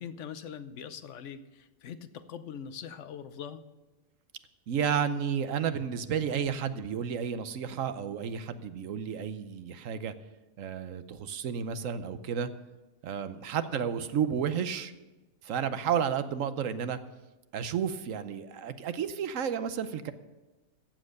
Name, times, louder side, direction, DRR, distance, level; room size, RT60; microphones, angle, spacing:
voice 1, 0.0-3.6 13.7-13.8, left 8 dB, 65° left, 11 dB, 1.0 m, -42 dB
voice 2, 4.7-10.1 10.6-12.5 13.0-14.9 15.4-17.0 17.5-20.1, right 7 dB, 70° right, 12 dB, 1.1 m, -32 dB
15.0 x 7.6 x 6.5 m, 1.1 s
omnidirectional pair, 1.4 m